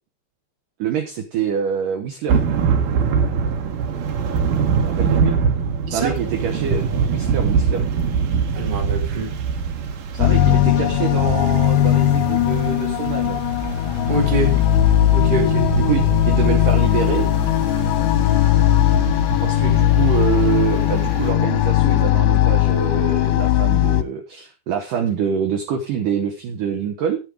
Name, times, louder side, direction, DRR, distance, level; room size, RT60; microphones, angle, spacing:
voice 1, 0.8-2.4 4.9-5.4 5.9-7.8 10.1-13.4 15.8-17.3 19.4-27.2, right 7 dB, 85° right, 4 dB, 1.8 m, -25 dB
Thunder / Rain, 2.3-21.3, right 6 dB, 65° right, 2.2 m, -24 dB
voice 2, 8.5-9.3 14.1-14.6 15.1-15.7, right 1 dB, 35° right, 2 dB, 0.7 m, -24 dB
sound 1, 10.2-24.0, left 13 dB, 80° left, 2.6 m, -18 dB
9.8 x 8.8 x 4.8 m, 0.31 s
omnidirectional pair, 5.5 m